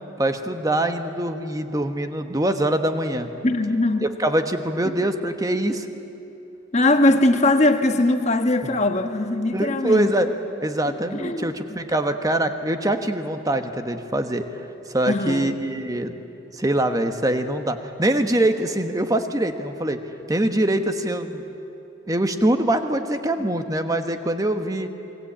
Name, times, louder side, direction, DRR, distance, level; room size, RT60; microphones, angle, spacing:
voice 1, 0.2-3.3 4.0-5.9 9.5-10.3 10.6-14.5 14.9-16.2 16.5-20.0 20.3-21.4 22.1-24.9, right 1 dB, 20° right, 7 dB, 1.2 m, -23 dB
voice 2, 3.4-4.1 6.7-10.1 10.9-11.5 15.1-15.6, left 2 dB, 35° left, 7 dB, 1.3 m, -20 dB
28.5 x 21.5 x 8.7 m, 2.9 s
head